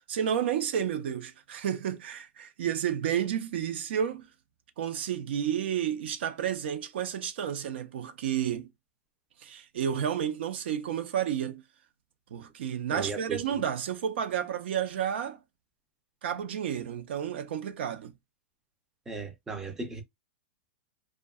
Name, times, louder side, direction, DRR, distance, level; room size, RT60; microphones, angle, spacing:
voice 1, 0.1-4.3 4.8-8.7 9.4-11.6 12.3-15.4 16.2-18.1, right 9 dB, 60° right, 0.5 m, -31 dB
voice 2, 12.9-13.4 19.1-20.0, right 4 dB, 5° right, 0.4 m, -36 dB
2.6 x 2.2 x 2.2 m
supercardioid pair, 165°, 7 cm